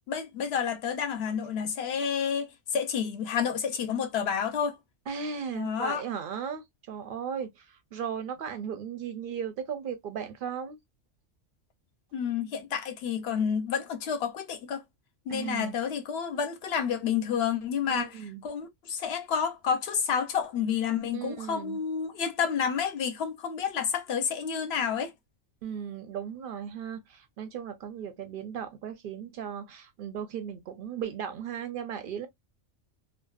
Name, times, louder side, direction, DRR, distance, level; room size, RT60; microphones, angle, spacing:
voice 1, 0.1-4.8 5.5-6.0 12.1-14.8 15.3-18.1 18.4-25.1, left 7 dB, 65° left, 0.7 m, -30 dB
voice 2, 5.1-10.8 15.3-15.8 17.9-18.4 21.1-21.8 25.6-32.3, right 7 dB, 60° right, 0.6 m, -36 dB
2.6 x 2.1 x 2.2 m
omnidirectional pair, 1.3 m